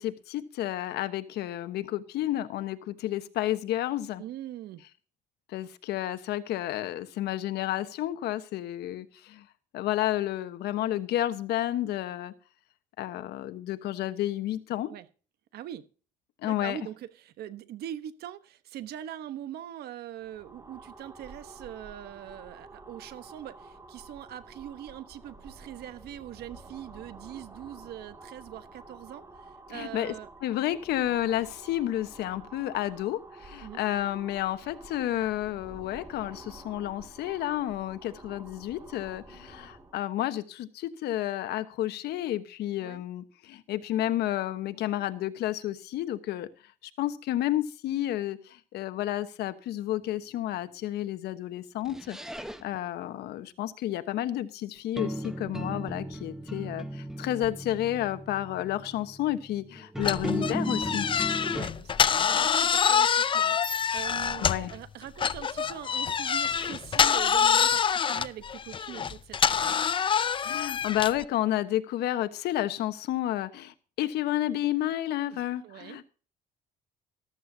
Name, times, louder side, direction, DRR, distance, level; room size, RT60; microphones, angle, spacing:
voice 1, 0.0-4.2 5.5-9.4 9.7-12.3 13.0-14.9 16.4-16.8 29.7-30.1 30.4-46.5 47.0-52.2 52.6-61.1 64.4-64.7 70.4-76.1, left 13 dB, 75° left, 1.2 m, -31 dB
voice 2, 4.2-4.8 14.9-15.1 15.5-15.9 16.4-30.3 33.6-33.8 42.8-43.0 61.5-69.8 75.3-76.0, right 11 dB, 70° right, 1.1 m, -42 dB
sound 1, 20.1-40.0, right 2 dB, 20° right, 2.4 m, -50 dB
sound 2, 51.8-52.8 55.0-61.6, right 1 dB, 5° right, 1.1 m, -36 dB
sound 3, 60.0-64.8 65.2-71.2, left 7 dB, 30° left, 0.5 m, -26 dB
14.0 x 13.0 x 2.8 m
cardioid pair, 110°, 17 cm